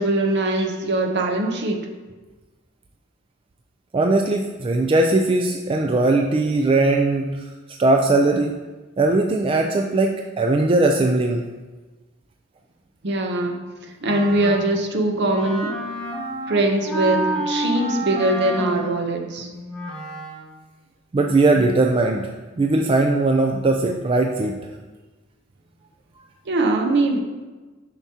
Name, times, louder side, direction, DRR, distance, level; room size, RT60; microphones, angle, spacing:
voice 1, 0.0-1.9 13.0-13.6 14.0-15.8 16.5-19.5 26.5-27.2, right 2 dB, 55° right, 4 dB, 0.8 m, -22 dB
voice 2, 3.9-7.4 7.8-8.6 9.0-11.4 21.1-22.2 22.6-24.6, right 2 dB, 25° right, 2 dB, 0.3 m, -19 dB
Wind instrument woodwind instrument, 14.0-20.6, right 1 dB, 5° left, 0.9 m, -30 dB
7.1 x 5.9 x 2.8 m, 1.3 s
head